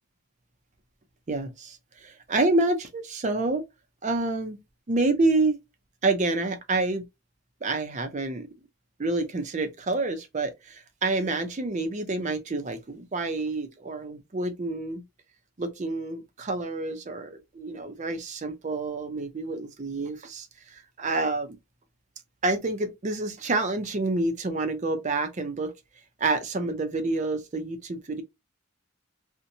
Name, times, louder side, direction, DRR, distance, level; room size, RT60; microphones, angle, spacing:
voice 1, 1.3-3.6 4.0-4.6 4.9-5.6 6.0-7.1 7.6-8.5 9.0-15.0 15.6-21.6 22.4-25.7 26.2-28.2, right 2 dB, 35° right, 0.5 m, -28 dB
2.6 x 2.1 x 2.6 m
head